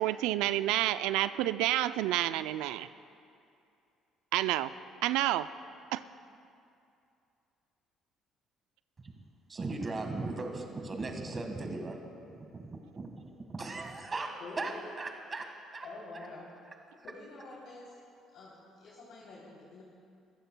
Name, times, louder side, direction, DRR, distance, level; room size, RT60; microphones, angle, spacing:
voice 1, 0.0-2.9 4.3-4.7 5.0-5.5 5.9-6.0, right 14 dB, 80° right, 13 dB, 0.3 m, -29 dB
voice 2, 9.5-16.3 16.6-17.2 18.9-19.0, right 3 dB, 35° right, 4 dB, 1.6 m, -39 dB
voice 3, 14.4-14.8 15.8-16.5 17.0-17.8 18.3-19.8, left 3 dB, 65° left, -6 dB, 3.1 m, -47 dB
25.0 x 14.5 x 2.2 m, 2.5 s
hypercardioid pair, 60°, 0 cm